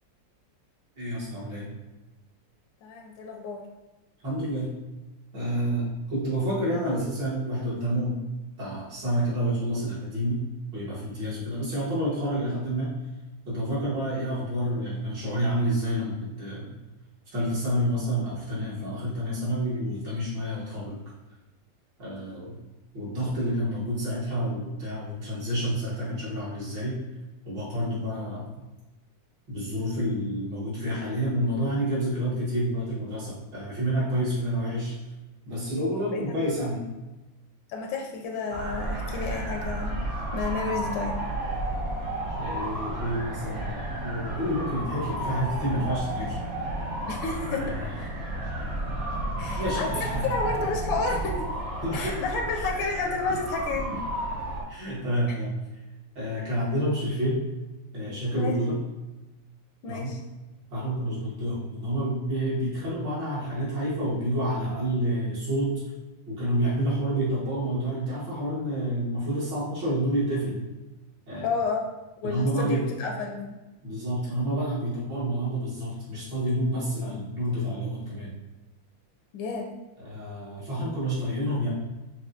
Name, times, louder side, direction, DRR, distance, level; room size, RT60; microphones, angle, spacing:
voice 1, 1.0-1.7 4.2-4.8 5.3-8.2 8.6-10.4 10.7-12.9 13.5-16.8 17.3-21.0 22.0-22.6 22.9-27.0 27.4-28.6 29.5-34.9 35.5-36.8 42.4-46.4 47.5-48.1 49.2-50.3 51.8-52.2 53.9-54.0 54.7-55.5 56.2-57.4 57.9-58.7 59.9-60.1 60.7-65.8 66.3-70.6 71.3-71.5 72.2-72.8 73.8-78.3 80.0-81.7, equal, 70° right, -8 dB, 2.4 m, -29 dB
voice 2, 2.8-3.7 36.1-36.3 37.7-39.9 40.3-41.2 47.1-47.8 49.4-51.5 51.9-53.9 58.3-58.6 59.8-60.2 71.4-71.8 72.2-73.6 79.3-79.7, left 4 dB, 85° left, 2 dB, 1.4 m, -31 dB
sound 1, 38.5-54.6, right 1 dB, 50° right, 1.0 m, -32 dB
6.0 x 2.5 x 2.7 m, 1.1 s
omnidirectional pair, 2.1 m